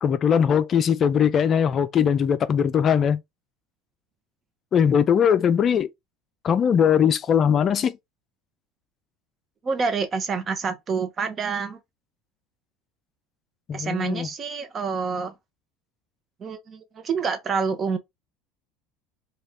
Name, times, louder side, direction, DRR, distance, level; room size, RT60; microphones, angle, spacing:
voice 1, 0.0-3.2 4.7-5.9 6.4-8.0 13.7-14.3, left 8 dB, 40° left, 0.4 m, -20 dB
voice 2, 9.6-11.8 13.7-15.3 16.4-18.0, right 5 dB, 35° right, 0.8 m, -27 dB
2.7 x 2.3 x 3.4 m
supercardioid pair, 100°, 0 cm